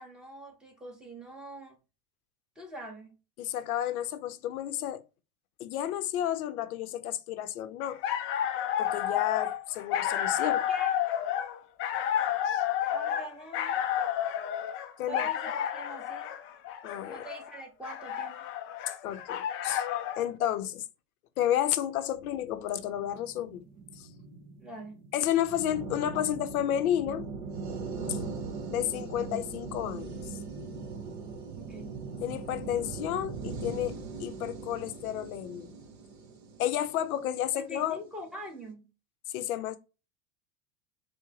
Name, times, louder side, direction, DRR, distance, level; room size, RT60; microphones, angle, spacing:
voice 1, 0.0-1.8 2.6-3.2 10.4-10.9 12.9-13.9 15.1-16.3 17.1-18.4 24.6-25.1 31.6-32.0 37.5-38.9, right 1 dB, ahead, 1.1 m, -44 dB
voice 2, 3.4-5.0 5.6-8.0 8.8-10.6 12.5-12.6 15.0-15.3 16.8-17.2 19.0-19.8 20.2-20.8 21.4-23.6 24.0-24.1 25.1-27.3 28.1-28.2 28.6-30.4 32.2-35.7 36.6-38.0 39.3-39.8, left 11 dB, 85° left, 0.7 m, -31 dB
sound 1, 7.8-20.3, left 10 dB, 30° left, 0.4 m, -31 dB
sound 2, 22.2-37.6, right 4 dB, 40° right, 1.0 m, -40 dB
4.7 x 2.1 x 3.0 m
supercardioid pair, 115°, 42 cm